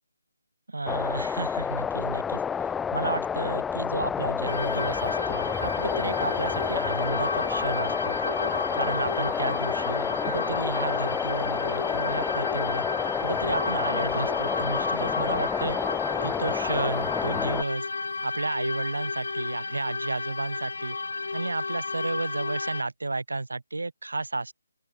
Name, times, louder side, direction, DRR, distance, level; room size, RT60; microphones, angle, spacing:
voice 1, 0.7-2.4 2.9-8.2 8.7-12.9 13.2-15.8 16.2-17.9 18.2-21.0 21.3-24.5, right 3 dB, 85° right, 0.6 m, -32 dB
sound 1, 0.9-17.6, left 7 dB, 5° left, 0.6 m, -29 dB
sound 2, 4.5-22.8, left 3 dB, 75° left, 1.7 m, -32 dB
sound 3, 7.5-15.5, right 7 dB, 50° right, 3.9 m, -54 dB
open air
figure-of-eight pair, 155°, 0 cm